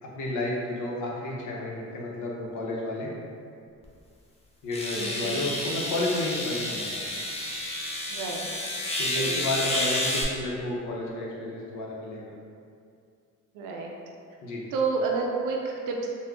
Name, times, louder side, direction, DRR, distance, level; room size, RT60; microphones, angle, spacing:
voice 1, 0.0-3.1 4.6-7.0 9.0-12.3 14.4-14.6, left 1 dB, 85° left, -3 dB, 0.7 m, -31 dB
sound 1, 3.8-3.9 4.7-10.2, left 1 dB, 20° left, 0.6 m, -30 dB
voice 2, 4.9-5.3 8.1-8.5 9.1-9.4 13.5-14.0 14.7-16.1, right 4 dB, 85° right, 0 dB, 0.5 m, -29 dB
3.6 x 2.1 x 3.4 m, 2.4 s
cardioid pair, 90°, 30 cm